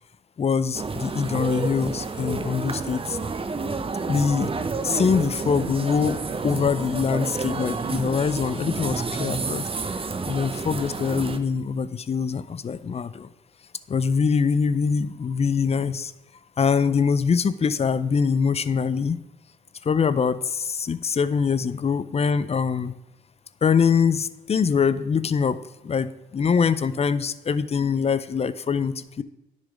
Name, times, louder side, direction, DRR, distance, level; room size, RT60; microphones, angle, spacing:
voice 1, 0.4-3.2 4.1-4.5 4.8-6.2 6.4-9.7 10.2-13.3 13.9-16.1 16.6-19.2 19.8-22.9 23.6-25.6 25.8-29.2, left 6 dB, 35° left, 15 dB, 0.4 m, -23 dB
sound 1, 0.7-11.4, right 4 dB, 30° right, 0.7 m, -30 dB
10.0 x 4.1 x 5.0 m, 0.93 s
supercardioid pair, 50°, 19 cm